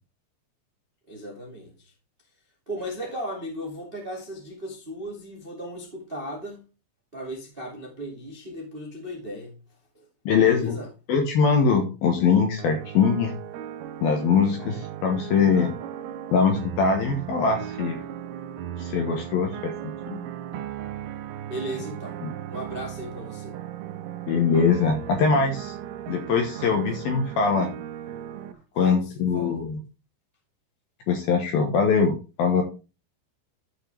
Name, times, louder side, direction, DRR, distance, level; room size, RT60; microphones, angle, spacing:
voice 1, 1.1-1.9 2.6-6.6 7.1-9.6 9.9-10.1 10.4-10.9 21.4-22.2 22.5-23.6 26.7-27.0 28.8-29.6, equal, 70° right, 0.5 m, -36 dB
voice 2, 10.3-10.8 11.1-13.3 14.0-15.7 16.3-18.0 18.8-19.7 20.1-20.3 20.5-20.6 22.2-22.3 24.3-25.7 26.1-27.7 28.8-29.8 31.1-32.6, left 5 dB, 70° left, 2.3 m, -22 dB
sound 1, 12.6-28.5, right 11 dB, 85° right, 3.6 m, -37 dB
13.0 x 5.9 x 3.4 m
omnidirectional pair, 5.8 m